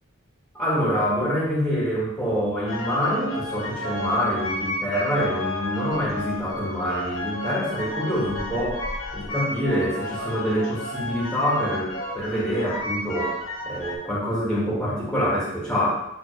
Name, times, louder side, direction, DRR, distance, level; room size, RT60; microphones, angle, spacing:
voice 1, 0.5-8.9 9.1-15.9, equal, 5° left, -6 dB, 2.0 m, -26 dB
sound 1, 2.7-13.9, left 1 dB, 75° left, 1.2 m, -32 dB
9.3 x 3.7 x 3.3 m, 0.85 s
head